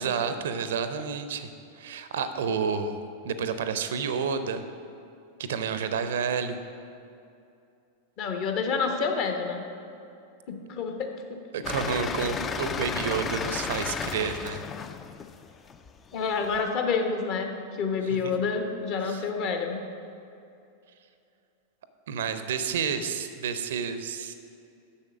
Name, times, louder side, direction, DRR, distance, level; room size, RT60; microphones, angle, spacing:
voice 1, 0.0-1.5 1.7-4.6 5.4-6.6 11.5-14.6 19.0-19.2 22.1-24.3, right 6 dB, 60° right, 10 dB, 0.5 m, -30 dB
voice 2, 8.2-9.6 10.5-11.4 12.2-12.3 16.1-19.8, left 5 dB, 40° left, 4 dB, 1.1 m, -28 dB
sound 1, 11.6-16.6, left 6 dB, 25° left, 0.4 m, -33 dB
7.1 x 6.5 x 6.1 m, 2.6 s
figure-of-eight pair, 90°, 0 cm